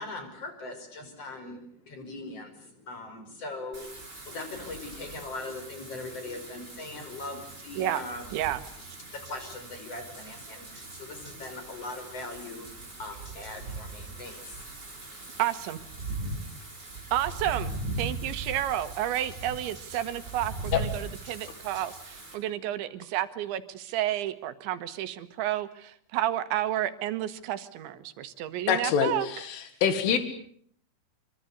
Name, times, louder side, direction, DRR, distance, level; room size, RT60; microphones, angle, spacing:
voice 1, 0.0-8.4 9.0-15.4 16.2-17.1, left 2 dB, 30° left, 7 dB, 5.9 m, -41 dB
Wind / Rain, 3.7-22.3, right 2 dB, 20° right, 8.1 m, -40 dB
voice 2, 15.4-15.8 17.1-17.7 18.0-29.3 30.1-30.2, right 12 dB, 75° right, 12 dB, 3.6 m, -31 dB
voice 3, 28.7-30.2, left 8 dB, 85° left, 10 dB, 4.4 m, -25 dB
26.0 x 25.0 x 8.1 m, 0.64 s
omnidirectional pair, 5.5 m